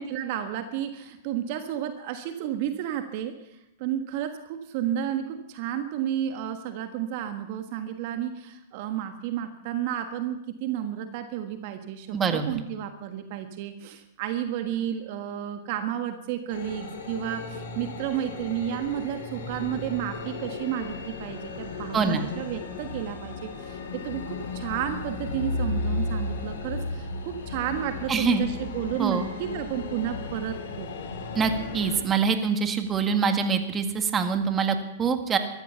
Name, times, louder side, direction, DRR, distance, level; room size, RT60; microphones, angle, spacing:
voice 1, 0.0-3.4 3.8-31.1, right 10 dB, 55° right, 7 dB, 1.5 m, -32 dB
voice 2, 12.1-12.6 21.9-22.3 28.1-28.4 29.0-29.3 31.4-35.4, right 5 dB, 20° right, 7 dB, 1.9 m, -25 dB
sound 1, 16.5-32.0, left 3 dB, 70° left, 3.6 m, -35 dB
14.5 x 14.0 x 6.9 m, 0.83 s
hypercardioid pair, 115°, 0 cm